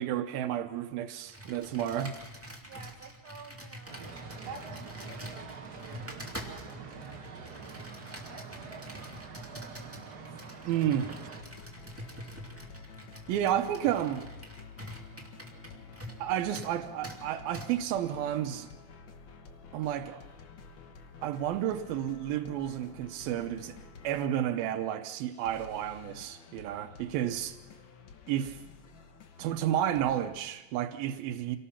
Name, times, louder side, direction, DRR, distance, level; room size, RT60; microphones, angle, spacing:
voice 1, 0.0-2.2 10.7-11.1 13.3-14.3 16.2-18.7 19.7-20.2 21.2-23.8 24.0-27.6 28.3-28.6 29.4-31.6, right 11 dB, 85° right, 8 dB, 2.7 m, -31 dB
Computer keyboard, 1.3-16.3 16.5-16.7 17.0-17.2 17.5-17.7, equal, 5° right, 1.8 m, -46 dB
voice 2, 2.6-4.0 4.3-7.0 8.3-8.9 9.3-10.4 13.3-13.6 15.6-15.8, right 4 dB, 35° right, -1 dB, 3.2 m, -54 dB
sound 1, 3.9-11.4, right 5 dB, 70° right, 0.9 m, -45 dB
sound 2, 11.4-30.4, left 5 dB, 65° left, 1.2 m, -51 dB
27.0 x 18.5 x 5.8 m, 1.1 s
omnidirectional pair, 4.1 m